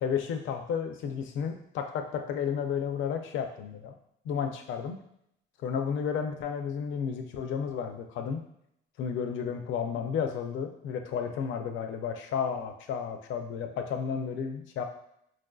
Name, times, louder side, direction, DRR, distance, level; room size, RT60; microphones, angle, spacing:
voice 1, 0.0-3.9 4.2-5.0 5.6-8.4 9.0-14.8, left 7 dB, 75° left, 5 dB, 0.5 m, -32 dB
4.4 x 2.6 x 2.3 m, 0.75 s
cardioid pair, 95°, 20 cm